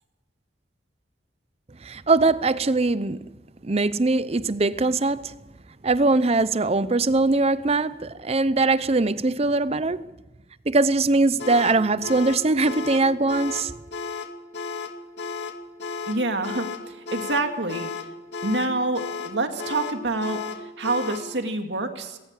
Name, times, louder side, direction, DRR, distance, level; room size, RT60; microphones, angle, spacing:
voice 1, 1.8-3.2 3.6-5.3 5.8-10.1 10.7-13.7, right 3 dB, 35° right, 0.7 m, -21 dB
sound 1, 11.4-21.3, left 4 dB, 70° left, 2.1 m, -34 dB
voice 2, 16.1-17.9 18.4-22.2, right 2 dB, 75° right, 2.3 m, -27 dB
19.0 x 18.5 x 7.4 m
head